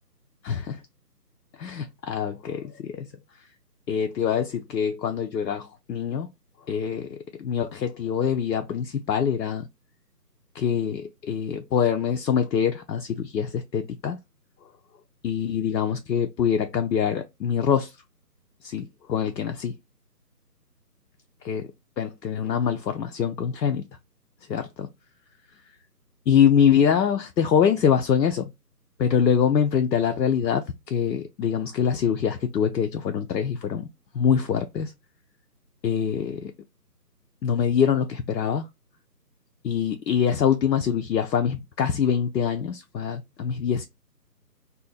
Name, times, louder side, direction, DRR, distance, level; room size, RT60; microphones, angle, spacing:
voice 1, 0.4-0.8 1.6-3.1 3.9-6.3 6.7-9.7 10.5-14.2 15.2-17.9 18.6-19.7 21.4-21.7 22.0-23.8 24.5-24.9 26.3-28.5 29.0-33.9 34.1-34.9 35.8-36.5 37.4-38.7 39.6-43.8, left 8 dB, 85° left, 0.6 m, -24 dB
2.6 x 2.2 x 3.9 m
figure-of-eight pair, 170°, 49 cm